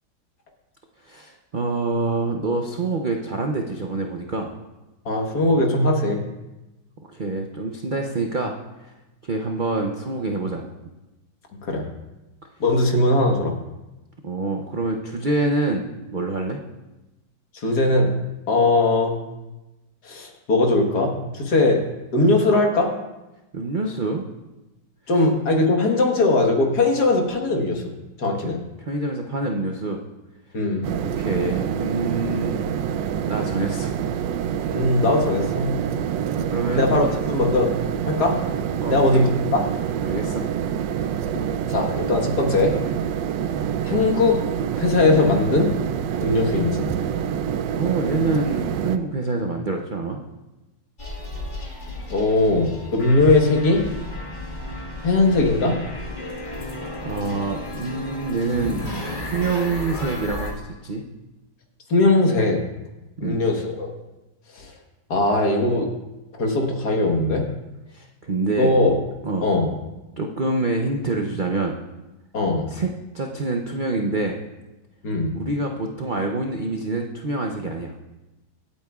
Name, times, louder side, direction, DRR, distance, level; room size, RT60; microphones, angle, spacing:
voice 1, 1.0-4.5 7.1-8.5 8.8-8.9 9.2-10.7 14.2-16.6 23.5-24.3 28.4-28.5 28.8-30.0 31.0-32.7 33.2-33.9 36.3-37.1 38.8-39.2 40.1-40.4 47.7-50.2 56.6-56.8 57.0-58.8 59.2-61.0 63.2-63.4 67.9-68.7 69.2-69.5 70.2-71.8 72.7-74.4 75.3-77.9, right 3 dB, 60° right, 2 dB, 0.5 m, -26 dB
voice 2, 5.1-6.2 11.6-11.8 12.6-13.5 17.5-18.1 18.5-19.2 20.0-21.8 22.1-22.9 25.1-27.8 28.2-28.6 30.5-30.8 34.7-35.8 36.7-37.7 38.1-38.4 38.8-39.3 41.7-42.8 43.8-44.4 44.8-45.7 46.2-46.9 52.1-53.9 55.0-55.8 61.9-62.6 63.2-63.9 64.5-64.7 65.1-65.9 66.3-67.5 68.6-69.0 69.4-69.7 72.3-72.7 75.0-75.3, left 2 dB, 65° left, 1 dB, 1.9 m, -20 dB
sound 1, 30.8-49.0, right 8 dB, 85° right, 1.3 m, -26 dB
sound 2, 51.0-60.5, left 1 dB, 30° left, 1.8 m, -33 dB
25.0 x 8.6 x 2.4 m, 1.0 s
omnidirectional pair, 1.9 m